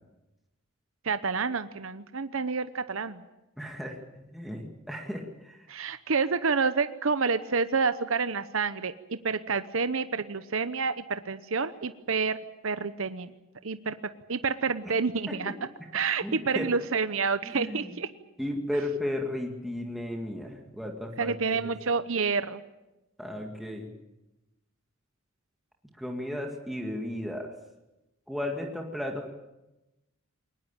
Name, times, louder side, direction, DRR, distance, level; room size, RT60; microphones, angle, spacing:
voice 1, 1.0-3.2 5.7-12.4 12.6-13.3 13.6-14.0 14.3-15.5 15.9-18.1 21.2-22.6, right 5 dB, 65° right, 11 dB, 0.9 m, -28 dB
voice 2, 3.6-5.7 14.8-14.9 15.3-15.5 16.2-16.7 17.4-17.9 18.4-21.7 23.2-23.9 26.0-27.5 28.3-29.3, left 1 dB, ahead, 1 dB, 2.0 m, -35 dB
22.0 x 20.0 x 8.9 m, 0.98 s
head